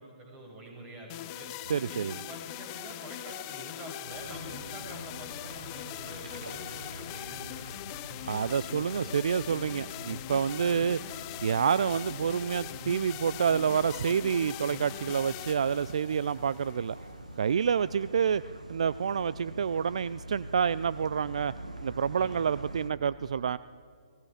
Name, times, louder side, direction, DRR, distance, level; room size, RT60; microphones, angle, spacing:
voice 1, 0.0-1.5 1.9-7.7 8.2-8.6 10.6-10.9 22.2-22.4, right 1 dB, 25° right, 0 dB, 6.7 m, -46 dB
sound 1, 1.1-17.1, left 19 dB, 30° left, 0.4 m, -42 dB
voice 2, 1.7-2.2 8.2-11.0 11.4-17.0 17.4-18.4 18.7-21.5 21.8-23.6, right 7 dB, 60° right, 17 dB, 0.4 m, -28 dB
sound 2, 4.1-22.9, right 1 dB, 85° right, 1.8 m, -45 dB
28.5 x 18.5 x 5.0 m, 2.2 s
figure-of-eight pair, 130°, 4 cm